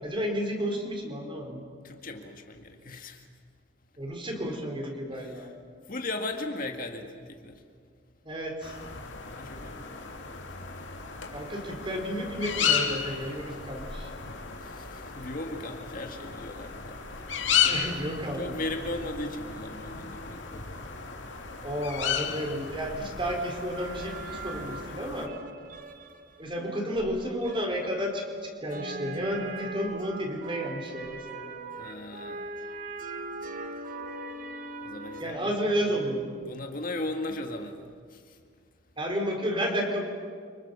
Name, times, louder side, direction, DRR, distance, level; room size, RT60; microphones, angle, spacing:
voice 1, 0.0-1.6 4.0-5.5 8.2-8.7 11.3-14.1 17.7-18.6 19.9-20.0 21.6-25.3 26.4-31.5 35.2-36.3 39.0-40.0, equal, 25° right, 2 dB, 4.3 m, -32 dB
voice 2, 1.8-3.2 5.1-5.5 5.9-7.6 9.2-10.2 14.6-17.0 17.4-17.8 18.4-20.9 31.8-32.5 34.8-35.5 36.4-38.4, left 2 dB, 45° left, 4 dB, 2.0 m, -37 dB
sound 1, 8.6-25.3, left 7 dB, 80° left, 2.9 m, -34 dB
sound 2, 23.7-35.2, right 2 dB, 45° right, 1.6 m, -40 dB
30.0 x 26.0 x 7.0 m, 2.1 s
head